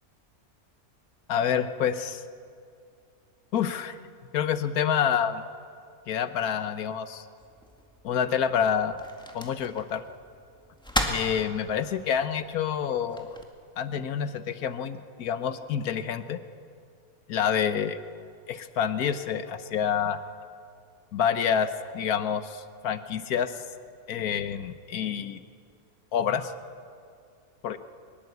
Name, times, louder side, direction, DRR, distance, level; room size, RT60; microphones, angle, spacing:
voice 1, 1.3-2.2 3.5-4.0 4.3-5.4 6.1-7.2 8.0-9.0 9.3-10.0 11.1-13.4 13.8-16.4 17.3-18.0 18.5-20.2 21.1-23.6 24.1-25.4 26.1-26.5 27.6-27.8, left 8 dB, 85° left, 11 dB, 1.4 m, -28 dB
sound 1, 7.4-13.4, equal, 5° left, 1.9 m, -37 dB
23.0 x 20.5 x 8.1 m, 2.4 s
omnidirectional pair, 1.5 m